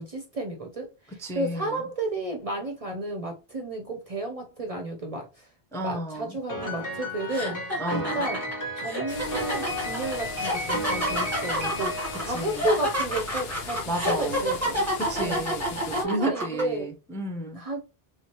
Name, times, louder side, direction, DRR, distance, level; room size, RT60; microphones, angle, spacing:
voice 1, 0.0-5.5 5.8-7.6 7.9-8.4 8.8-14.9 15.2-15.4 15.9-16.9 17.6-17.8, right 1 dB, 45° right, 0.6 m, -32 dB
voice 2, 1.2-1.9 5.7-6.4 7.8-8.3 12.3-12.7 13.9-14.4 15.0-17.6, right 1 dB, 5° left, 0.5 m, -32 dB
Piano, 6.5-13.0, equal, 20° left, 1.0 m, -33 dB
sound 1, 6.6-6.8 7.3-16.6, equal, 15° right, 1.0 m, -29 dB
sound 2, 9.1-16.0, left 5 dB, 75° left, 0.9 m, -39 dB
3.5 x 3.0 x 2.9 m
omnidirectional pair, 1.1 m